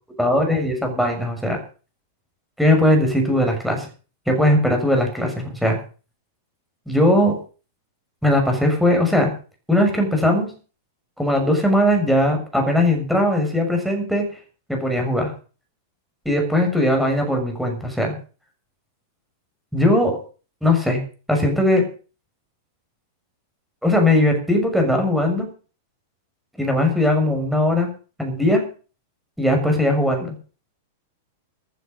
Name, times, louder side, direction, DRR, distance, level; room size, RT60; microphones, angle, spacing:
voice 1, 0.2-1.6 2.6-3.9 4.3-5.8 6.9-7.4 8.2-9.3 9.7-10.5 11.2-14.2 14.7-15.3 16.2-18.1 19.7-20.2 20.6-21.0 21.3-21.8 23.8-25.5 26.6-27.9 28.2-28.7 29.4-30.3, left 1 dB, ahead, 2 dB, 6.8 m, -19 dB
15.5 x 10.5 x 6.5 m, 0.38 s
figure-of-eight pair, 95°, 0 cm